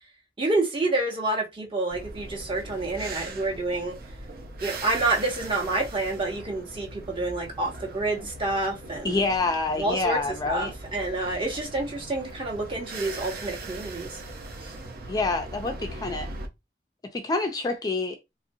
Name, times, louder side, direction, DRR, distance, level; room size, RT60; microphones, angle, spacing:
voice 1, 0.4-4.0 4.6-9.2 9.8-10.2 10.5-14.2 14.6-14.7, right 2 dB, 30° right, 1.0 m, -28 dB
sound 1, 1.9-16.5, right 2 dB, 60° right, 0.6 m, -40 dB
voice 2, 9.0-10.7 15.1-16.3 17.1-18.2, left 3 dB, 20° left, 0.4 m, -27 dB
2.9 x 2.6 x 2.6 m
head